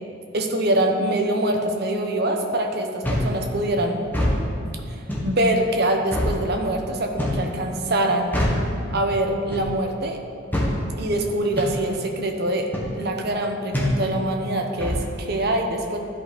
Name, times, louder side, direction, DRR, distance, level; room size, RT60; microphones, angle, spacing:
voice 1, 0.3-4.0 4.9-8.3 8.9-10.2 11.0-12.7 12.9-16.0, right 1 dB, 50° right, 3 dB, 0.9 m, -24 dB
sound 1, 3.0-3.3 4.0-4.4 5.1-5.3 6.1-6.4 7.2-7.5 8.3-8.6 9.5-9.7 10.5-10.7 11.6-11.7 12.7-12.9 13.7-14.0 14.8-15.0, left 1 dB, 10° left, 1.3 m, -23 dB
13.0 x 5.4 x 4.2 m, 2.7 s
head